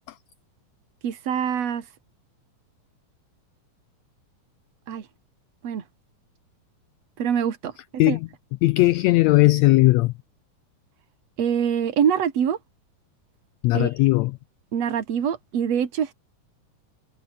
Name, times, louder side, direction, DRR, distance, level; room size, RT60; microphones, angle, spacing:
voice 1, 1.0-1.8 4.9-5.1 5.6-5.8 7.2-7.7 8.1-8.2 11.4-12.6 13.7-13.9 14.7-16.1, right 8 dB, 55° right, 3.4 m, -24 dB
voice 2, 8.6-10.1 13.6-14.4, left 19 dB, 90° left, 1.5 m, -18 dB
omnidirectional pair, 3.7 m